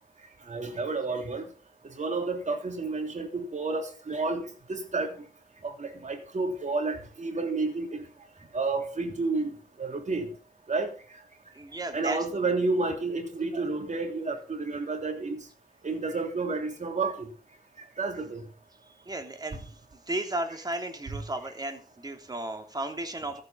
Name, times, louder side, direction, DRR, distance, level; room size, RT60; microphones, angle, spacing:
voice 1, 0.5-1.4 2.0-5.3 5.6-8.0 8.5-9.5 9.8-10.3 10.7-10.9 11.9-15.4 15.8-17.3 18.0-18.4, right 3 dB, 50° right, 3.3 m, -30 dB
voice 2, 11.5-12.2 19.0-19.8 20.1-23.4, right 1 dB, 25° right, 3.1 m, -34 dB
14.0 x 8.1 x 5.7 m
cardioid pair, 75°, 16 cm